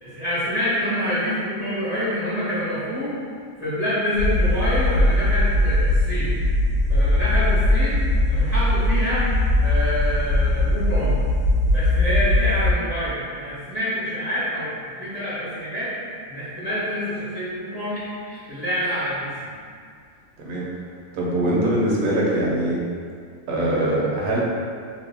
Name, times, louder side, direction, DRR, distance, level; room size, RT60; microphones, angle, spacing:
voice 1, 0.0-3.2 3.6-6.4 6.9-9.3 9.6-11.2 11.7-15.9 16.3-19.5, equal, 30° left, -11 dB, 0.8 m, -27 dB
sound 1, 4.2-12.7, left 1 dB, 70° left, 0.8 m, -20 dB
voice 2, 20.4-20.7 21.1-22.8 23.5-24.4, right 1 dB, 70° right, -5 dB, 1.1 m, -22 dB
2.9 x 2.5 x 3.3 m, 2.2 s
omnidirectional pair, 1.6 m